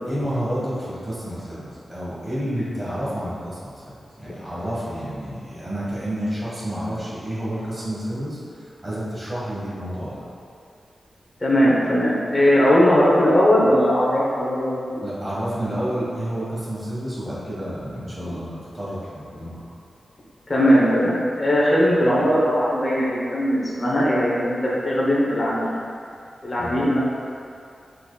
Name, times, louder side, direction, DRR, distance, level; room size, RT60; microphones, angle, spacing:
voice 1, 0.1-10.2 15.0-19.6 26.6-26.8, equal, 15° right, -9 dB, 1.3 m, -30 dB
voice 2, 11.4-15.0 20.5-25.7 26.4-27.0, equal, 25° left, -7 dB, 0.8 m, -19 dB
5.8 x 3.9 x 2.2 m, 2.4 s
wide cardioid pair, 180°, 0 cm